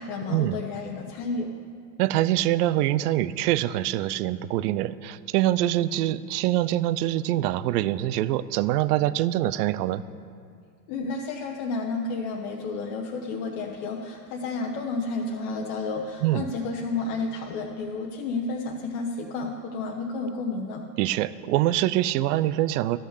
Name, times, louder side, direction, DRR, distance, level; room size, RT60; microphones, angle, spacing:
voice 1, 0.0-1.5 10.9-20.8, left 3 dB, 55° left, 0 dB, 1.0 m, -31 dB
voice 2, 2.0-10.0 16.2-16.5 21.0-23.0, right 14 dB, 65° right, 17 dB, 0.5 m, -24 dB
13.0 x 5.7 x 6.6 m, 2.3 s
hypercardioid pair, 110°, 50 cm